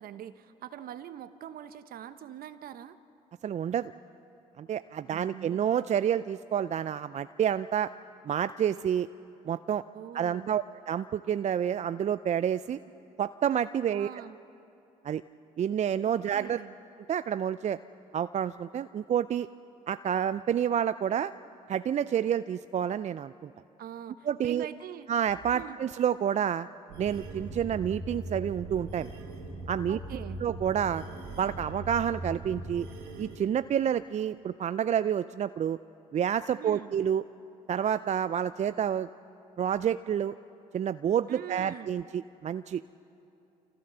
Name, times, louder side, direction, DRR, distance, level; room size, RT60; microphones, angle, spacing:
voice 1, 0.0-3.0 5.1-5.7 9.9-10.5 13.9-14.4 16.0-16.7 23.8-25.1 25.5-25.8 29.9-30.4 36.6-36.9 41.3-41.9, right 10 dB, 65° right, 13 dB, 1.0 m, -43 dB
voice 2, 3.4-3.9 4.6-7.9 8.2-9.1 9.5-9.8 10.1-12.8 13.2-14.1 15.0-15.2 15.6-16.6 17.1-17.8 18.1-19.5 19.9-21.3 21.7-23.5 24.3-24.7 25.1-26.7 27.0-29.1 29.7-31.0 31.4-32.9 33.2-35.8 36.1-37.2 37.7-39.1 39.6-40.3 40.7-42.8, right 9 dB, 45° right, 14 dB, 0.5 m, -29 dB
sound 1, 26.9-33.4, right 2 dB, 85° right, 2.8 m, -40 dB
26.5 x 15.0 x 6.8 m, 2.8 s
hypercardioid pair, 55°, 17 cm